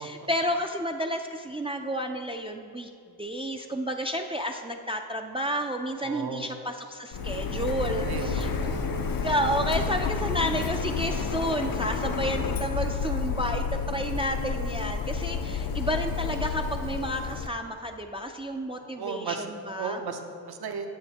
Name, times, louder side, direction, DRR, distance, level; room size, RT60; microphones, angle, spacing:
voice 1, 0.0-2.9 3.2-8.5 9.2-20.0, equal, 15° right, 4 dB, 0.3 m, -31 dB
voice 2, 6.0-6.5 8.0-9.0 9.2-9.4 18.8-20.9, right 5 dB, 65° right, 5 dB, 0.7 m, -36 dB
Printer, 7.1-17.5, left 5 dB, 60° left, 0.5 m, -30 dB
9.0 x 6.9 x 2.8 m, 2.4 s
cardioid pair, 55°, 40 cm